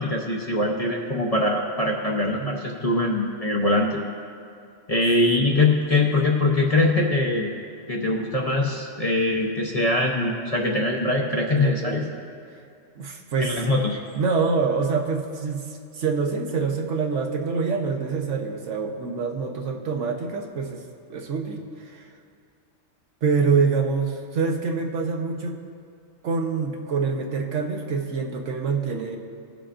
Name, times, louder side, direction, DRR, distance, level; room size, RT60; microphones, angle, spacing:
voice 1, 0.0-4.0 4.9-7.5 7.9-12.1 13.4-14.0, left 2 dB, 35° left, -1 dB, 0.7 m, -22 dB
voice 2, 11.5-12.1 12.9-13.6 14.1-20.8 21.1-22.1 23.2-25.6 26.2-29.2, right 5 dB, 70° right, 2 dB, 1.2 m, -26 dB
18.0 x 6.9 x 2.5 m, 2.4 s
omnidirectional pair, 1.3 m